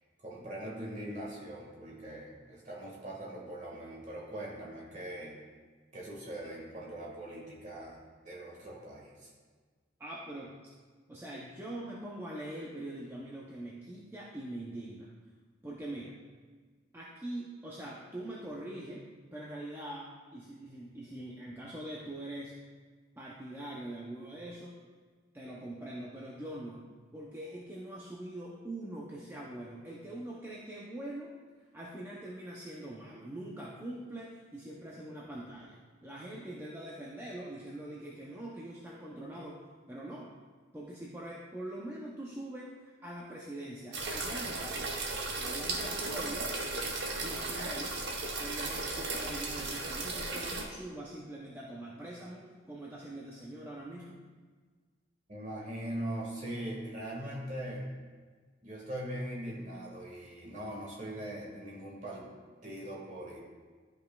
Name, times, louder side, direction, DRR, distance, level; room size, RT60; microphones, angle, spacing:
voice 1, 0.2-5.4 5.9-9.3 55.3-57.9 58.6-62.3 62.6-63.4, right 1 dB, 35° right, -3 dB, 1.7 m, -41 dB
voice 2, 10.0-10.5 11.1-15.1 15.6-16.1 16.9-19.0 19.3-22.6 23.2-24.8 25.3-31.3 31.7-39.6 39.9-40.3 40.7-44.9 45.4-46.5 47.1-48.0 48.4-54.2, right 1 dB, 10° right, -5 dB, 0.5 m, -43 dB
sound 1, 43.9-50.6, right 3 dB, 60° right, 0.9 m, -36 dB
11.5 x 5.3 x 2.3 m, 1.5 s
head